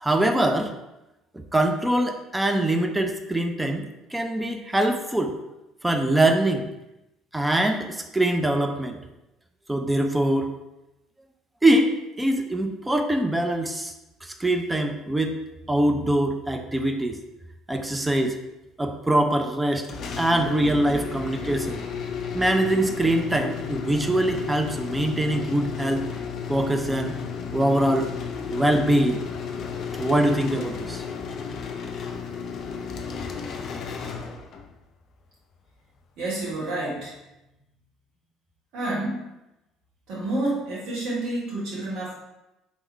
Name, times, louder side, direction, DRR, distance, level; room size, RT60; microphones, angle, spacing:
voice 1, 0.0-0.7 1.5-3.8 4.1-5.3 5.8-6.7 7.3-9.0 9.7-10.5 11.6-13.9 14.2-15.3 15.7-17.2 17.7-18.4 18.8-19.9 20.2-21.8 22.3-26.0 26.5-27.1 27.5-28.1 28.5-29.2 30.0-31.0, right 1 dB, 10° right, 5 dB, 0.6 m, -23 dB
sound 1, 19.8-34.8, left 6 dB, 50° left, 0.5 m, -33 dB
voice 2, 36.2-37.2 38.7-39.3 40.1-42.1, right 2 dB, 60° right, -6 dB, 1.4 m, -29 dB
3.6 x 3.1 x 4.4 m, 0.94 s
figure-of-eight pair, 55°, 0 cm